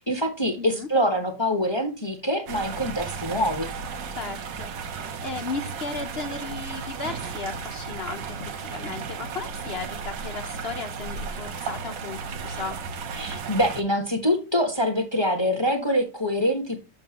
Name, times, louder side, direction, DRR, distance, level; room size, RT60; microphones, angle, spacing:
voice 1, 0.0-3.7 13.1-16.8, equal, 20° left, 4 dB, 0.7 m, -25 dB
voice 2, 0.6-0.9 4.1-12.8, left 4 dB, 60° left, 6 dB, 0.6 m, -35 dB
sound 1, 2.5-13.8, right 5 dB, 80° right, 1.6 m, -34 dB
7.0 x 6.7 x 2.9 m, 0.29 s
omnidirectional pair, 2.0 m